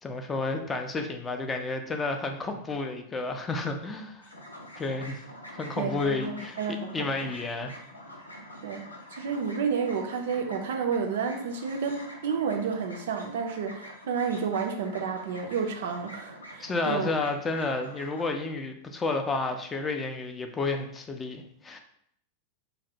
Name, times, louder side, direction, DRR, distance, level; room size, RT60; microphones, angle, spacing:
voice 1, 0.0-4.3 4.8-5.2 5.5-6.6 6.9-7.7 16.6-21.8, left 3 dB, 20° left, 5 dB, 0.4 m, -31 dB
sound 1, 4.2-18.3, left 1 dB, 80° left, 0.5 m, -46 dB
voice 2, 5.8-7.0 8.6-8.9 9.2-17.1, right 6 dB, 55° right, 4 dB, 0.4 m, -30 dB
3.1 x 2.1 x 2.7 m, 0.69 s
figure-of-eight pair, 90°, 0 cm